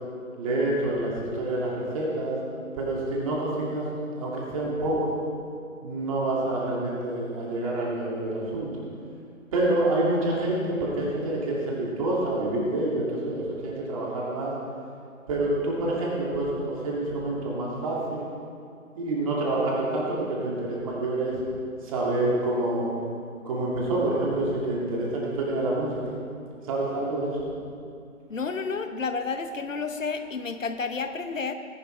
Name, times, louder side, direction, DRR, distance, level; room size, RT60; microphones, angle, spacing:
voice 1, 0.4-2.4 2.7-3.9 4.2-5.2 5.8-8.7 9.5-14.5 15.3-18.2 18.9-21.4 21.8-22.8 23.4-26.2 26.7-27.5, right 2 dB, 25° right, -4 dB, 2.6 m, -27 dB
voice 2, 28.3-31.5, left 4 dB, 65° left, 8 dB, 1.0 m, -30 dB
19.5 x 11.0 x 3.4 m, 2.4 s
figure-of-eight pair, 155°, 43 cm